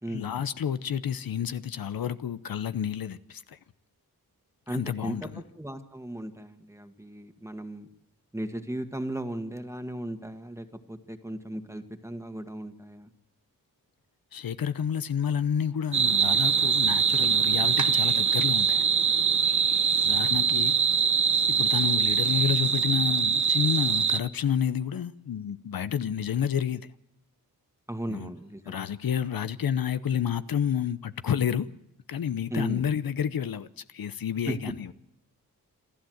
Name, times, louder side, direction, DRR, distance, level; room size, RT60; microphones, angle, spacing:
voice 1, 0.1-3.6 4.7-5.3 14.3-18.9 20.0-20.7 21.5-26.9 28.1-28.3 28.7-31.7 32.1-34.9, left 8 dB, 75° left, 0.8 m, -30 dB
voice 2, 4.7-7.9 8.3-13.1 27.9-28.8 32.5-32.8 34.5-34.7, right 1 dB, 10° right, 1.8 m, -36 dB
sound 1, 15.9-24.2, right 7 dB, 50° right, 0.9 m, -23 dB
27.0 x 13.0 x 7.9 m
wide cardioid pair, 90°, 36 cm